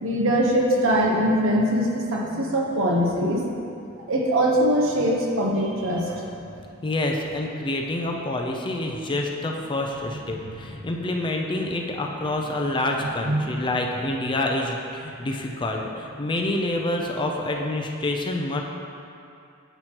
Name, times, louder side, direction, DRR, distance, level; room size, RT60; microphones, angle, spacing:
voice 1, 0.0-3.5 4.1-6.3 13.2-13.4, equal, 65° right, -1 dB, 0.9 m, -22 dB
voice 2, 6.8-18.6, left 2 dB, 20° left, 1 dB, 0.4 m, -27 dB
7.9 x 6.0 x 2.9 m, 2.6 s
head